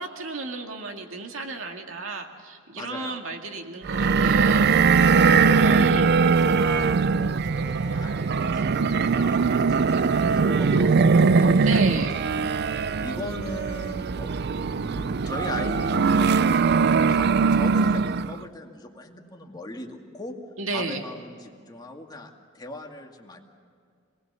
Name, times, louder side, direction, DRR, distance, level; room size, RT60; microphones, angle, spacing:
voice 1, 0.0-4.7 5.5-6.1 11.6-12.1 20.6-21.0, right 3 dB, 75° right, 3 dB, 2.1 m, -33 dB
voice 2, 2.8-3.2 4.7-4.9 5.4-10.0 10.3-12.4 13.0-14.3 14.7-20.3 20.7-23.4, left 1 dB, 20° left, 1 dB, 2.2 m, -39 dB
sound 1, 3.8-18.4, right 5 dB, 55° right, 0.5 m, -21 dB
26.5 x 20.0 x 6.9 m, 2.2 s
head